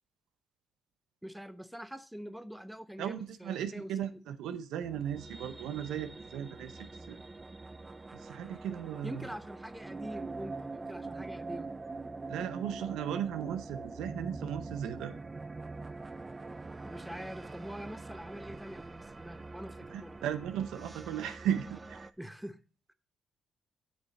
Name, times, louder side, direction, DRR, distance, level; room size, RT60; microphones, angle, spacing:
voice 1, 1.2-3.9 4.3-4.4 9.0-11.7 16.7-20.2 22.2-22.6 22.9-23.0, equal, 5° right, 0.8 m, -44 dB
voice 2, 3.0-7.2 8.1-9.2 12.3-15.2 19.9-22.1, right 9 dB, 85° right, 0.7 m, -36 dB
sound 1, 4.8-22.1, right 3 dB, 20° right, 0.4 m, -44 dB
8.1 x 6.4 x 4.0 m
cardioid pair, 90°, 0 cm